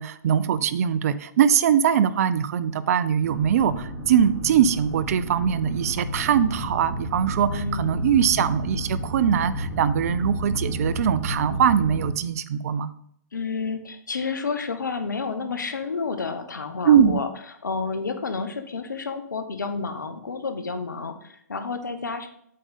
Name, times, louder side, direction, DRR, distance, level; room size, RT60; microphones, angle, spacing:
voice 1, 0.0-12.9 16.8-17.2, right 8 dB, 55° right, 16 dB, 0.5 m, -22 dB
sound 1, 3.2-12.1, equal, 20° right, 2.5 m, -31 dB
voice 2, 7.5-8.0 13.3-22.3, left 4 dB, 85° left, 8 dB, 0.9 m, -30 dB
7.6 x 4.7 x 4.1 m, 0.71 s
hypercardioid pair, 125°, 10 cm